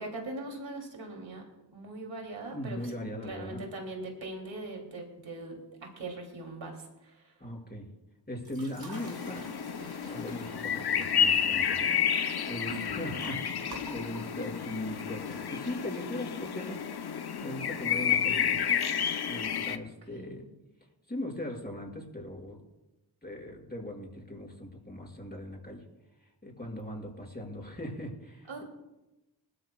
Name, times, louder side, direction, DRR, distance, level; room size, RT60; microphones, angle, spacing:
voice 1, 0.0-1.5 1.7-2.9 3.2-7.3 12.6-13.2 20.1-20.5 28.5-28.6, right 2 dB, 85° right, 1 dB, 3.0 m, -41 dB
voice 2, 2.5-3.7 7.4-7.9 8.3-9.5 9.8-11.9 12.5-16.8 17.3-18.8 19.2-20.5 21.1-22.6 23.2-25.8 26.4-28.6, left 1 dB, 20° left, -2 dB, 5.8 m, -39 dB
sound 1, 8.4-16.2, right 2 dB, 55° right, 3.1 m, -51 dB
sound 2, 8.9-19.8, left 8 dB, 55° left, 0.8 m, -30 dB
21.0 x 13.5 x 2.4 m, 1.0 s
cardioid pair, 50°, 45 cm